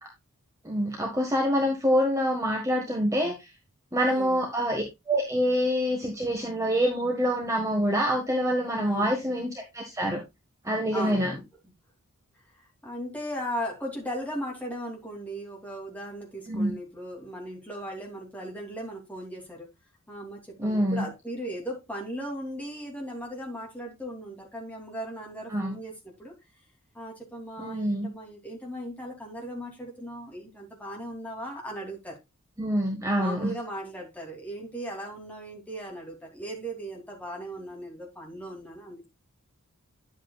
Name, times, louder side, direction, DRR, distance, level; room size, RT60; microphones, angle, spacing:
voice 1, 0.6-3.5 3.9-10.2 10.6-11.3 16.5-16.7 20.6-21.1 25.5-25.7 27.6-28.1 32.6-33.5, equal, 15° right, 1.5 m, -26 dB
voice 2, 4.0-4.4 8.8-9.1 10.9-11.7 12.5-19.7 20.1-26.3 26.9-32.2 33.2-39.1, equal, 5° left, 2.8 m, -37 dB
10.0 x 8.0 x 2.4 m
head